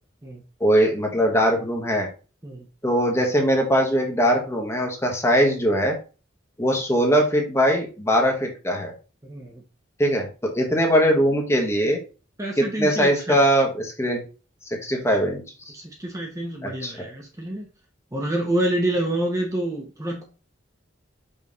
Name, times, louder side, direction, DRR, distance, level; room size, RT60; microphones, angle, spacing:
voice 1, 0.6-2.1 2.8-6.0 6.6-8.9 10.0-12.0 12.6-14.2 14.8-15.4 16.6-17.1, equal, 15° left, 1.3 m, -21 dB
voice 2, 9.2-9.6 12.4-13.4 15.7-17.7 18.1-20.2, right 1 dB, 15° right, 1.0 m, -27 dB
5.4 x 3.3 x 5.3 m
head